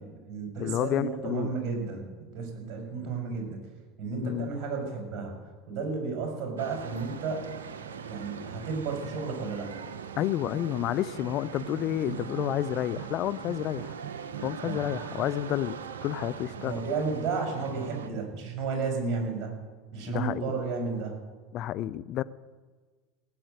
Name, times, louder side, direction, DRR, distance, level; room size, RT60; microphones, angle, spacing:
voice 1, 0.0-3.6 4.0-5.4 5.7-7.4 8.1-9.7 14.6-14.9 16.6-19.5 19.9-21.2, right 4 dB, 50° right, 2 dB, 5.5 m, -33 dB
voice 2, 0.6-1.5 4.2-4.5 10.2-13.9 14.4-15.8 16.0-16.7 20.1-20.5 21.5-22.2, left 12 dB, 50° left, 17 dB, 0.6 m, -30 dB
sound 1, 6.6-18.1, right 7 dB, 80° right, 0.9 m, -40 dB
17.5 x 7.9 x 7.8 m, 1.4 s
hypercardioid pair, 80°, 0 cm